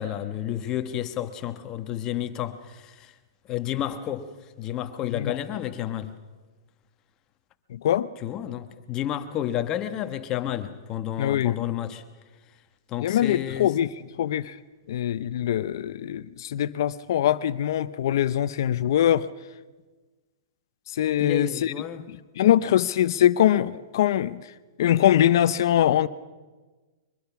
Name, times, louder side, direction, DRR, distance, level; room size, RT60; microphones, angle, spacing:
voice 1, 0.0-3.1 3.5-4.3 4.6-6.2 8.2-12.0 12.9-13.7 21.2-22.0, left 11 dB, 25° left, 1.2 m, -31 dB
voice 2, 7.7-8.1 11.2-11.5 13.0-14.6 14.9-19.3 20.9-21.7 22.1-24.4 24.8-26.1, left 11 dB, 65° left, 0.7 m, -23 dB
23.5 x 21.0 x 5.9 m
hypercardioid pair, 145°, 2 cm